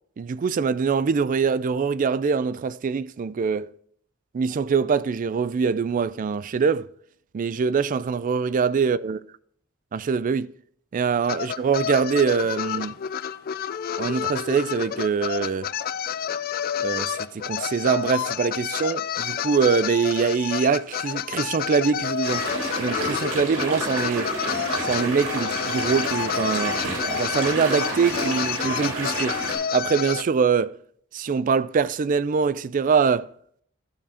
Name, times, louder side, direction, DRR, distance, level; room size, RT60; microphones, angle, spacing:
voice 1, 0.2-3.7 4.3-6.9 7.3-9.2 9.9-10.5 10.9-13.0 14.0-15.7 16.8-22.5 22.8-24.3 24.8-26.8 27.2-29.4 29.7-30.8 31.1-33.3, right 5 dB, 40° right, 0.3 m, -23 dB
sound 1, 11.2-30.2, left 9 dB, 45° left, 0.3 m, -29 dB
sound 2, 22.2-29.5, right 2 dB, 80° right, 3.9 m, -29 dB
12.5 x 7.0 x 2.8 m
head